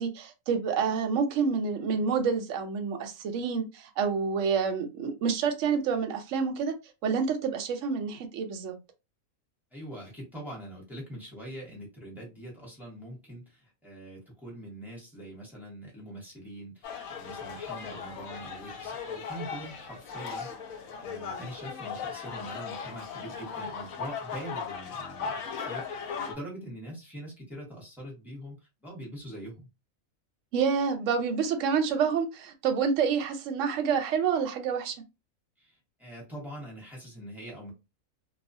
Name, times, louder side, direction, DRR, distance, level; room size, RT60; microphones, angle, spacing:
voice 1, 0.0-6.7 7.0-8.7 30.5-34.9, right 6 dB, 70° right, 0.9 m, -28 dB
voice 2, 9.7-29.7 35.6-37.7, right 1 dB, ahead, 0.9 m, -43 dB
sound 1, 16.8-26.4, left 6 dB, 80° left, 1.0 m, -38 dB
2.4 x 2.3 x 2.6 m
omnidirectional pair, 1.5 m